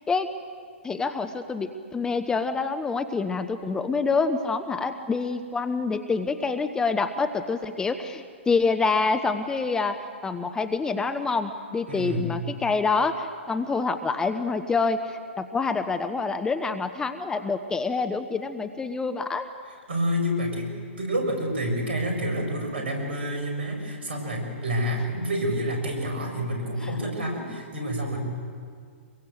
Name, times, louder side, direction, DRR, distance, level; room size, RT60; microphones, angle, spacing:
voice 1, 0.8-19.5 26.8-26.9, left 4 dB, 10° left, 9 dB, 0.8 m, -27 dB
voice 2, 11.9-12.3 19.9-20.7 21.0-28.2, equal, 60° right, 2 dB, 6.9 m, -28 dB
25.0 x 22.5 x 7.9 m, 2.1 s
figure-of-eight pair, 120°, 7 cm